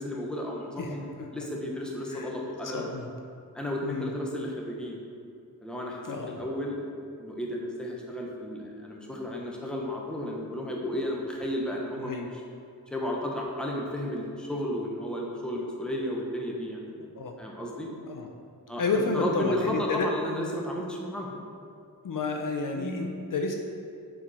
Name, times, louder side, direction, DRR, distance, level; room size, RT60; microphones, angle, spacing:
voice 1, 0.0-1.1 1.3-2.9 3.5-5.0 5.6-6.8 7.2-12.3 12.9-16.9 17.4-17.9 18.7-21.4 22.8-23.1, left 1 dB, ahead, -2 dB, 0.9 m, -33 dB
voice 2, 0.8-1.3 2.1-2.3 2.7-3.1 3.8-4.1 6.0-6.4 12.0-12.3 17.0-17.3 18.1-18.3 18.8-20.1 22.0-23.5, left 4 dB, 60° left, 2 dB, 0.7 m, -31 dB
7.1 x 4.9 x 4.2 m, 2.4 s
wide cardioid pair, 115°, 37 cm